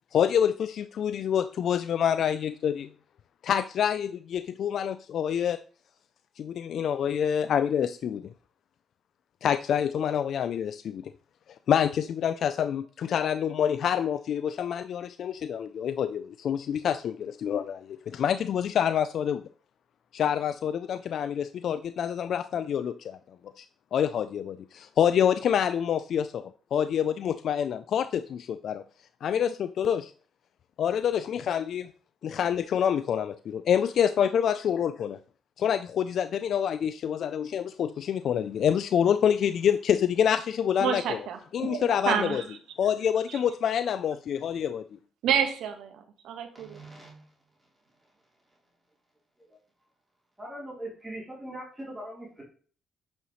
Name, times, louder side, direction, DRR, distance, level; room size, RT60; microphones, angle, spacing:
voice 1, 0.1-2.9 3.4-5.6 6.4-8.3 9.4-11.1 11.7-19.4 20.1-23.2 23.6-23.7 23.9-28.8 29.2-30.1 30.8-31.9 32.2-35.2 35.6-41.2 41.5-42.4 42.8-44.8, left 8 dB, 65° left, 12 dB, 0.3 m, -27 dB
voice 2, 40.8-42.6 43.3-43.4 45.2-46.8, right 8 dB, 80° right, 6 dB, 1.2 m, -29 dB
voice 3, 46.5-47.3 50.4-52.4, right 1 dB, 15° right, -4 dB, 3.4 m, -41 dB
8.5 x 5.6 x 3.0 m, 0.42 s
cardioid pair, 90°, 0 cm